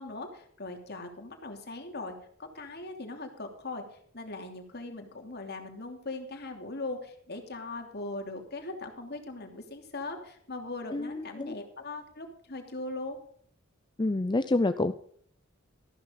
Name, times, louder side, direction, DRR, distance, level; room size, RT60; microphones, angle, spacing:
voice 1, 0.0-3.8 4.1-13.2, left 2 dB, 55° left, 4 dB, 3.0 m, -40 dB
voice 2, 10.9-11.5 14.0-14.9, left 2 dB, 20° left, 10 dB, 0.5 m, -28 dB
14.0 x 12.5 x 4.0 m, 0.62 s
head